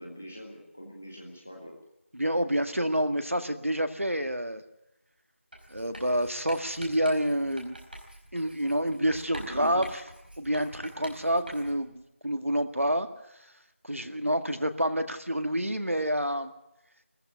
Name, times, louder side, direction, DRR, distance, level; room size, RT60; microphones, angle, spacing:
voice 1, 0.0-1.7 9.3-9.9 14.0-14.3, equal, 5° left, 0 dB, 0.7 m, -42 dB
voice 2, 2.1-4.6 5.7-7.8 8.3-9.8 10.4-13.1 13.8-16.5, equal, 85° right, 8 dB, 2.0 m, -28 dB
Writing, 5.5-11.9, right 1 dB, 45° right, 4.8 m, -46 dB
18.5 x 15.0 x 9.7 m, 0.88 s
figure-of-eight pair, 175°, 7 cm